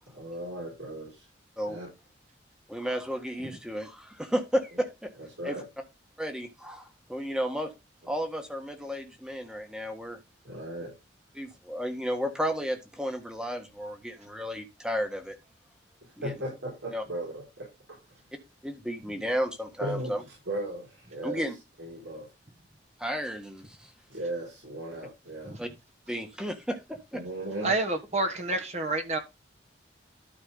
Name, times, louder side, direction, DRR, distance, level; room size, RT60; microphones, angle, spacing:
voice 1, 0.1-1.3 1.7-1.9 5.4-5.7 10.4-10.9 16.0-18.0 19.8-21.4 21.8-22.3 24.1-25.6 27.1-27.8, right 1 dB, 75° right, 5.3 m, -37 dB
voice 2, 2.7-5.1 5.4-5.6 6.2-7.7 8.1-10.2 11.3-15.4 16.2-16.3 16.9-17.0 18.6-20.2 21.2-21.5 23.0-23.9 25.6-25.7 26.1-27.2, equal, 5° right, 1.5 m, -33 dB
voice 3, 27.6-29.2, right 2 dB, 35° right, 1.4 m, -28 dB
12.5 x 5.0 x 3.8 m
head